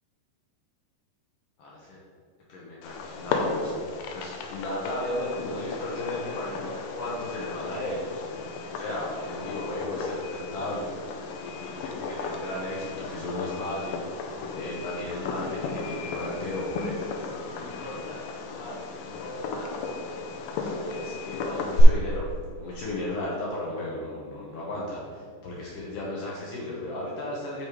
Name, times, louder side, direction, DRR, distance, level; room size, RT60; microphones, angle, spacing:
voice 1, 1.6-2.0 2.5-3.8 4.1-22.3 22.6-27.7, left 1 dB, 65° left, -5 dB, 2.3 m, -35 dB
Fireworks, 2.8-21.8, left 4 dB, 90° left, 2.0 m, -35 dB
9.6 x 5.5 x 3.2 m, 2.1 s
omnidirectional pair, 4.8 m